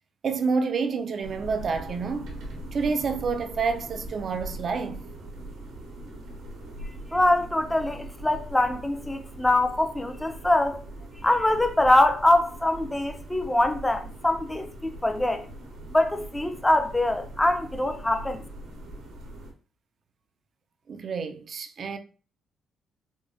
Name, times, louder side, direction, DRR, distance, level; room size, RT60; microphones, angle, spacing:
voice 1, 0.2-2.4 2.7-5.0 20.9-22.0, right 5 dB, 50° right, 0.5 m, -28 dB
sound 1, 1.2-19.5, right 1 dB, 85° right, 1.1 m, -41 dB
voice 2, 7.1-10.8 11.2-15.4 15.9-18.4, left 1 dB, 10° left, 0.5 m, -23 dB
4.9 x 2.2 x 2.5 m
cardioid pair, 90°, 0 cm